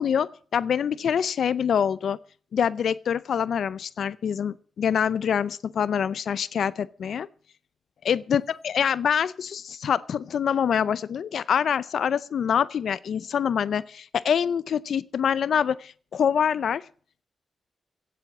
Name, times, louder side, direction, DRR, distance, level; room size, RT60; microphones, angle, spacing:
voice 1, 0.0-2.2 2.5-7.3 8.0-16.8, left 8 dB, 60° left, 0.5 m, -25 dB
16.5 x 7.8 x 7.3 m
wide cardioid pair, 175°, 0 cm